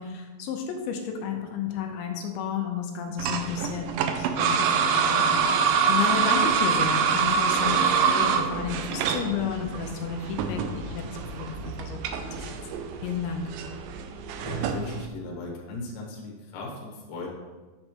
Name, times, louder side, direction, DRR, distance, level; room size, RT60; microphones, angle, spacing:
voice 1, 0.0-12.5 13.0-13.4, left 6 dB, 90° left, 2 dB, 2.6 m, -32 dB
sound 1, 3.2-15.1, right 6 dB, 85° right, 2.0 m, -26 dB
voice 2, 14.4-17.3, left 3 dB, 65° left, -2 dB, 2.6 m, -37 dB
8.9 x 5.4 x 3.0 m, 1.3 s
omnidirectional pair, 4.5 m